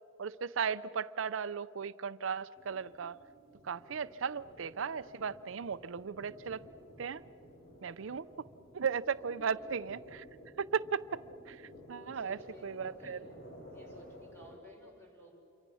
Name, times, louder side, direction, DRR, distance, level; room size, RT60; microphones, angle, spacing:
voice 1, 0.2-3.2 3.6-6.6 7.0-7.2 7.8-8.3 8.7-10.2 10.6-13.2, right 6 dB, 75° right, 16 dB, 0.5 m, -36 dB
sound 1, 2.6-14.6, equal, 50° left, 4.2 m, -54 dB
voice 2, 9.3-9.6 11.8-13.2 13.6-15.3, left 1 dB, 10° left, -1 dB, 5.9 m, -55 dB
28.5 x 24.5 x 6.3 m, 2.7 s
head